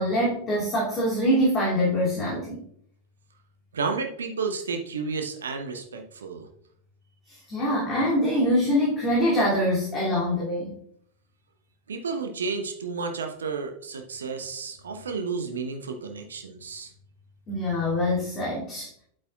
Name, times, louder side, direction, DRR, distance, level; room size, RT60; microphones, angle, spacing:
voice 1, 0.0-2.6 7.3-10.8 17.5-18.9, equal, 25° left, -6 dB, 2.7 m, -24 dB
voice 2, 3.7-6.5 11.9-16.9, right 4 dB, 70° right, 5 dB, 0.9 m, -32 dB
8.7 x 7.9 x 2.4 m, 0.66 s
figure-of-eight pair, 90°, 0 cm